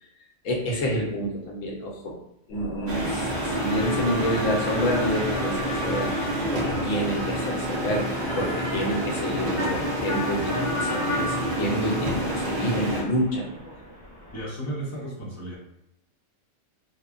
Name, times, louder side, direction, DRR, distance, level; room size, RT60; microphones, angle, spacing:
voice 1, 0.4-2.1 2.5-6.1 6.5-8.1 8.4-13.5, equal, 90° left, -1 dB, 1.0 m, -28 dB
sound 1, 2.5-7.8, left 2 dB, 60° left, 0.9 m, -43 dB
sound 2, 2.9-13.0, right 1 dB, 55° right, 0.6 m, -28 dB
sound 3, 3.3-14.4, left 1 dB, 10° right, 1.2 m, -35 dB
voice 2, 14.3-15.6, right 1 dB, 20° left, -5 dB, 0.5 m, -34 dB
3.0 x 2.1 x 2.4 m, 0.83 s
omnidirectional pair, 1.3 m